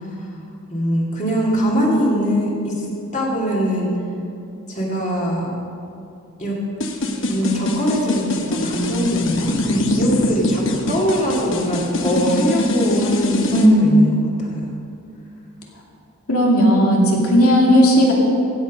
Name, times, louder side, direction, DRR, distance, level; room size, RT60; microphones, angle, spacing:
voice 1, 0.7-2.9 3.1-3.9 4.7-5.5 6.4-6.6 7.3-14.6, equal, 35° left, -3 dB, 2.2 m, -22 dB
sound 1, 6.8-13.7, left 1 dB, 60° left, 1.0 m, -22 dB
voice 2, 16.3-18.1, equal, 80° left, -2 dB, 2.4 m, -14 dB
15.5 x 8.1 x 5.2 m, 2.5 s
head